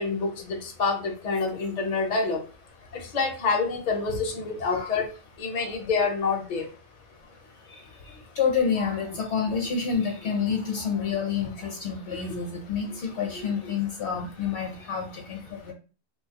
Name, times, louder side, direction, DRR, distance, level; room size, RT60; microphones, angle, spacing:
voice 1, 0.0-2.4 2.9-5.1 5.4-6.7 13.3-13.5, left 4 dB, 50° left, 2 dB, 0.6 m, -27 dB
voice 2, 4.5-4.9 5.5-5.8 7.7-15.7, left 6 dB, 70° left, 2 dB, 0.9 m, -29 dB
2.7 x 2.3 x 2.8 m, 0.35 s
omnidirectional pair, 1.2 m